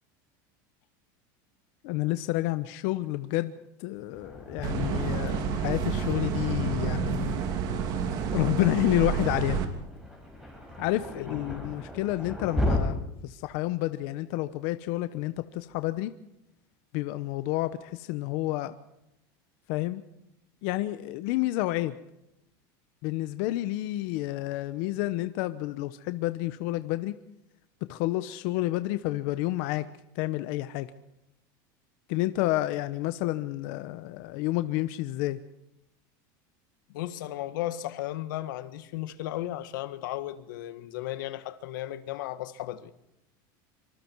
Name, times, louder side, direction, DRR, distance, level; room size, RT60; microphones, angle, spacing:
voice 1, 1.8-3.5 3.8-7.3 8.3-9.6 10.8-16.1 16.9-18.7 19.7-20.0 20.6-21.9 23.0-27.1 27.9-29.8 30.1-30.9 32.1-35.4, left 17 dB, 55° left, 1.0 m, -29 dB
Thunder, 4.1-12.8, left 1 dB, 5° right, 5.2 m, -36 dB
sound 1, 4.6-9.7, right 6 dB, 40° right, 2.9 m, -29 dB
voice 2, 11.1-11.7 36.9-42.9, left 14 dB, 85° left, 1.7 m, -35 dB
25.5 x 25.0 x 4.7 m
supercardioid pair, 170°, 10 cm